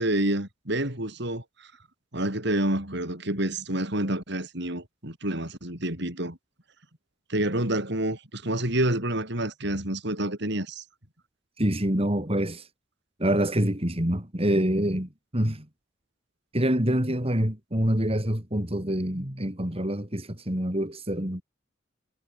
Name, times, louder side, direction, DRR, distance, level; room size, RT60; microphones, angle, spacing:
voice 1, 0.0-1.7 2.1-6.4 7.3-10.8, right 1 dB, 60° right, 6.8 m, -28 dB
voice 2, 11.6-12.7 13.2-15.7 16.5-21.4, right 1 dB, 30° right, 4.4 m, -26 dB
head